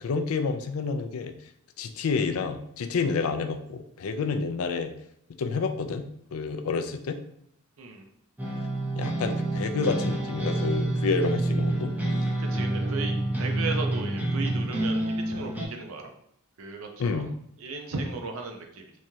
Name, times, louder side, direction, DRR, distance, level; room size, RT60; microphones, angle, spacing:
voice 1, 0.0-1.3 1.8-4.9 5.4-7.2 9.0-11.9 14.8-14.9 17.0-17.3, left 4 dB, 75° left, 7 dB, 0.4 m, -29 dB
sound 1, 8.4-15.7, right 1 dB, 10° right, 0.6 m, -28 dB
voice 2, 12.4-16.1 16.6-17.3 17.6-18.9, right 4 dB, 65° right, 3 dB, 0.6 m, -36 dB
3.5 x 3.1 x 2.8 m, 0.74 s
head